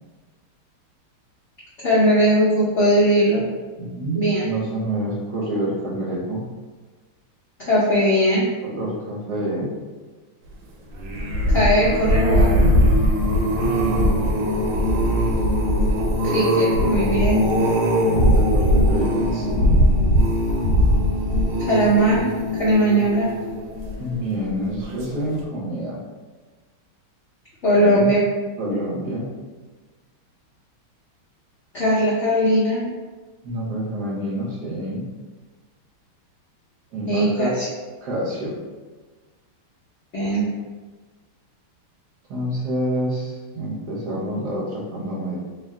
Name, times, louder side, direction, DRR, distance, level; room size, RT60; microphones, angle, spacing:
voice 1, 1.8-3.5 4.1-4.5 7.6-8.5 11.5-12.6 16.2-17.4 21.6-22.3 22.5-23.3 27.6-28.2 31.7-32.8 37.1-37.7 40.1-40.5, equal, 75° left, -8 dB, 0.6 m, -19 dB
voice 2, 3.8-6.5 8.6-9.8 13.5-14.4 18.2-19.8 24.0-26.0 27.7-28.1 28.6-29.3 33.4-35.1 36.9-37.5 38.0-38.6 42.3-45.4, right 1 dB, 60° right, -5 dB, 1.1 m, -27 dB
sound 1, 10.9-24.3 24.8-25.1 25.4-25.5, equal, 80° right, 1.5 m, -20 dB
3.6 x 2.4 x 3.5 m, 1.3 s
omnidirectional pair, 2.3 m